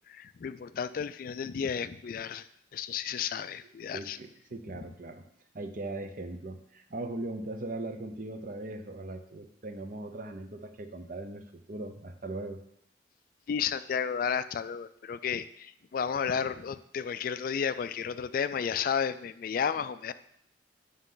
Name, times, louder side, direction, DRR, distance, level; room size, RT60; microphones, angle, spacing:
voice 1, 0.1-4.2 4.7-4.8 13.5-20.1, left 7 dB, 50° left, 14 dB, 0.3 m, -32 dB
voice 2, 3.9-5.2 5.5-12.6, right 2 dB, 50° right, 7 dB, 0.7 m, -39 dB
8.0 x 5.5 x 3.9 m, 0.71 s
head